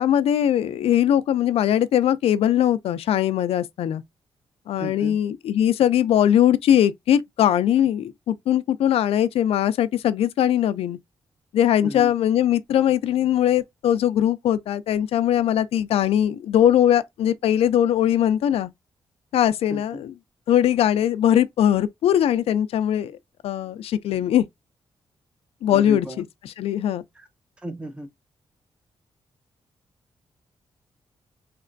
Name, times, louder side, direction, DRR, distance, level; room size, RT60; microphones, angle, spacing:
voice 1, 0.0-4.0 4.7-11.0 11.5-18.7 19.3-20.1 20.5-23.1 23.4-24.5 25.6-26.1 26.6-27.0, left 10 dB, 85° left, 0.3 m, -20 dB
voice 2, 4.8-5.2 11.8-12.1 19.7-20.0 25.7-26.2 27.2-27.3 27.6-28.1, right 1 dB, 10° right, 0.5 m, -34 dB
3.2 x 2.9 x 2.5 m
wide cardioid pair, 165°, 10 cm